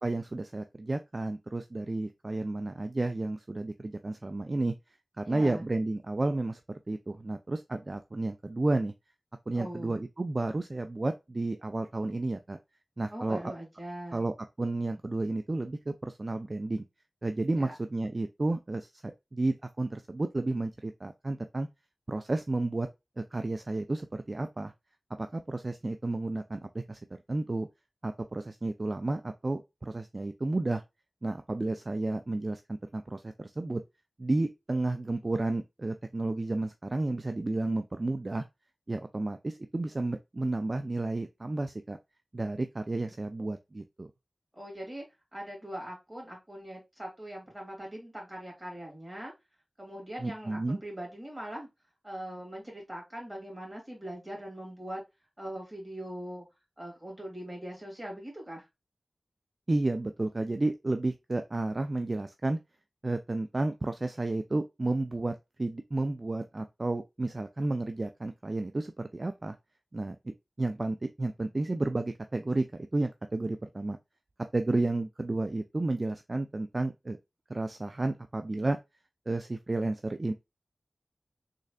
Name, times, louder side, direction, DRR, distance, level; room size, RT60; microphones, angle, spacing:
voice 1, 0.0-4.7 5.2-6.6 6.9-8.9 9.5-12.6 13.0-13.4 14.1-14.3 14.6-16.8 17.2-18.9 19.3-21.7 22.1-22.9 23.2-24.7 25.2-27.0 27.3-27.7 28.0-30.8 31.2-33.8 34.2-38.4 38.9-42.0 42.3-44.1 50.2-50.8 59.7-62.6 63.0-69.6 69.9-72.7 72.9-74.0 74.5-77.2 77.5-78.8 79.3-80.3, right 2 dB, 45° right, 0.3 m, -32 dB
voice 2, 5.2-5.6 9.5-10.0 13.1-14.3 17.6-17.7 44.5-45.0 45.3-49.3 49.8-51.7 52.0-55.0 55.4-56.5 56.8-58.7, right 1 dB, 20° right, 2.5 m, -41 dB
3.8 x 3.2 x 2.3 m
wide cardioid pair, 70°, 0 cm